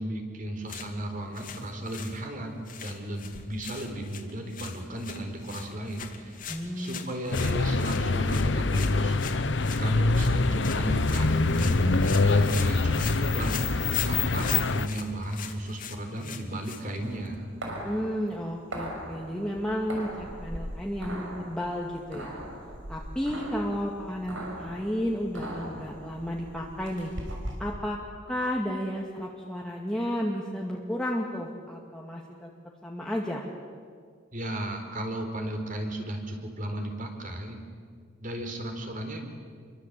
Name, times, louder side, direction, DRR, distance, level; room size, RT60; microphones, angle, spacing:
voice 1, 0.0-6.4 6.8-9.2 9.8-13.6 14.1-17.4 34.3-37.6 38.2-39.3, right 1 dB, 45° right, 4 dB, 4.4 m, -35 dB
sound 1, 0.6-17.4, left 7 dB, 45° left, 2.6 m, -43 dB
voice 2, 6.5-7.0 17.8-22.4 22.9-27.1 27.6-28.0 28.3-32.5 32.8-33.4, equal, 5° left, -2 dB, 2.2 m, -32 dB
sound 2, 7.3-14.9, left 3 dB, 65° left, 0.9 m, -24 dB
sound 3, 17.0-27.7, right 1 dB, 85° right, 6.4 m, -40 dB
29.0 x 24.0 x 8.5 m, 2.1 s
head